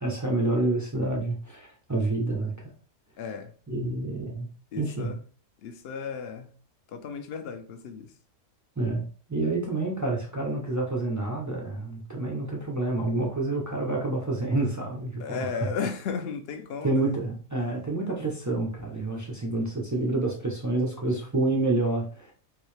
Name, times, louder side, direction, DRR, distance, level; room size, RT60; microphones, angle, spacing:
voice 1, 0.0-2.7 3.7-4.5 4.8-5.1 8.8-15.5 16.8-22.3, right 2 dB, 30° right, 0.3 m, -28 dB
voice 2, 3.2-3.5 4.7-5.2 5.6-6.5 6.9-8.1 15.2-17.2, left 5 dB, 60° left, 0.6 m, -34 dB
3.7 x 2.7 x 3.2 m
omnidirectional pair, 1.5 m